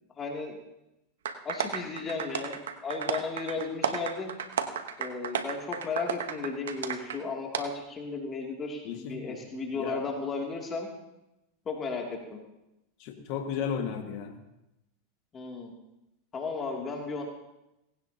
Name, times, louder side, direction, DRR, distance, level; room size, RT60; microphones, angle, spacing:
voice 1, 0.2-0.6 1.4-4.3 5.0-10.9 11.7-12.4 15.3-15.7 16.3-17.2, left 4 dB, 25° left, 0 dB, 2.6 m, -35 dB
sound 1, 1.2-7.2 7.5-7.6, right 7 dB, 85° right, 1.1 m, -33 dB
voice 2, 8.8-9.4 9.7-10.0 13.0-14.4, left 7 dB, 55° left, 3 dB, 1.7 m, -34 dB
18.0 x 16.5 x 2.9 m, 0.91 s
hypercardioid pair, 105°, 0 cm